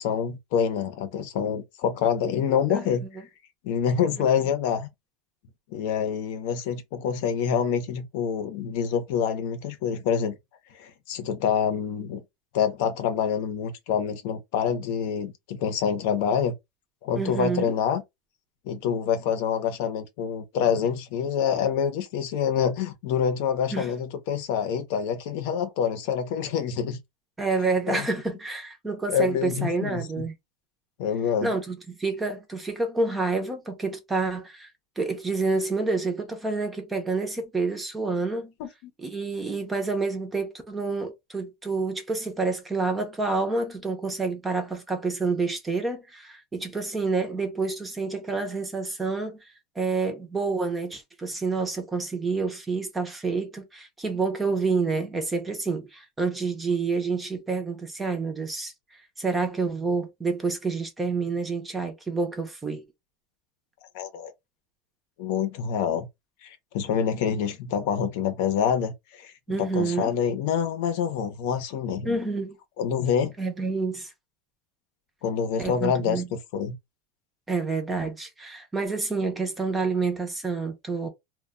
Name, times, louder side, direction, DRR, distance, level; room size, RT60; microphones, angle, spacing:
voice 1, 0.0-3.1 3.6-4.9 5.7-10.4 10.7-12.2 12.5-16.5 17.0-18.0 18.7-27.0 27.9-28.1 29.1-30.3 31.0-31.5 38.6-38.9 63.9-64.3 65.2-66.1 66.4-72.2 72.8-73.3 75.2-76.8, left 7 dB, 60° left, 0.7 m, -26 dB
voice 2, 2.7-3.1 17.1-17.7 23.7-23.9 27.4-30.3 31.4-34.7 35.0-38.5 39.0-49.5 49.8-62.8 69.5-70.1 72.0-72.6 73.4-74.1 75.6-76.3 77.5-81.1, right 4 dB, 10° right, 0.6 m, -28 dB
2.2 x 2.1 x 3.6 m
supercardioid pair, 160°, 0 cm